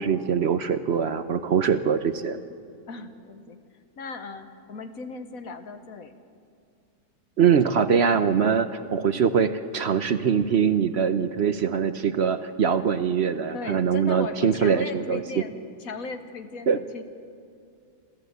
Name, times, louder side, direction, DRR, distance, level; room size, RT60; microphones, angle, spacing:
voice 1, 0.0-2.4 7.4-15.2 16.7-16.8, right 7 dB, 55° right, 11 dB, 0.8 m, -23 dB
voice 2, 2.9-3.6 4.0-6.1 13.5-17.0, left 4 dB, 65° left, 8 dB, 1.5 m, -37 dB
28.0 x 14.0 x 8.1 m, 2.4 s
omnidirectional pair, 1.6 m